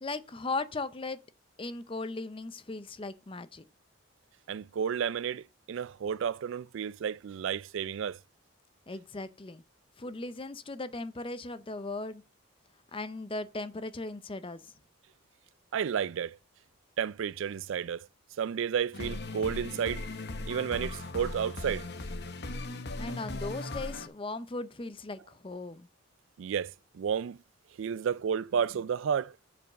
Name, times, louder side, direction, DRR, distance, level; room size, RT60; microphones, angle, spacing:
voice 1, 0.0-1.2 1.6-3.6 8.9-9.6 10.0-12.2 12.9-14.7 23.0-25.9, left 2 dB, 25° left, 0.6 m, -37 dB
voice 2, 4.5-8.2 15.7-16.4 17.0-18.1 18.4-20.1 20.5-21.9 26.4-27.4 27.8-29.3, right 7 dB, 65° right, 0.3 m, -32 dB
sound 1, 18.9-24.1, left 2 dB, 50° left, 0.9 m, -38 dB
7.0 x 5.1 x 6.4 m
head